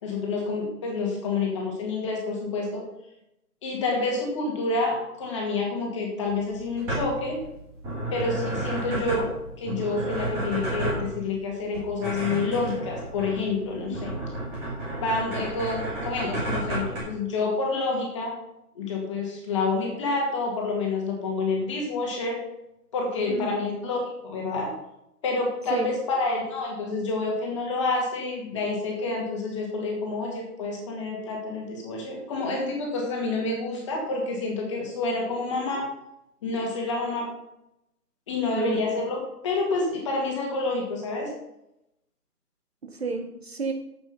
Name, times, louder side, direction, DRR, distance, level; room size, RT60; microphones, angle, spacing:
voice 1, 0.0-2.8 3.6-7.4 8.1-9.3 9.6-14.1 15.0-18.4 18.7-22.4 22.9-24.7 25.2-35.8 36.4-37.3 38.3-41.3, left 3 dB, 20° left, -1 dB, 2.1 m, -28 dB
sound 1, 6.3-17.0, right 1 dB, 5° right, 1.5 m, -32 dB
voice 2, 8.9-9.2 13.8-14.0 23.3-23.6 25.7-25.9 38.5-38.8 42.8-43.7, right 4 dB, 40° right, 5 dB, 1.1 m, -31 dB
9.2 x 8.1 x 5.7 m, 0.85 s
hypercardioid pair, 170°, 47 cm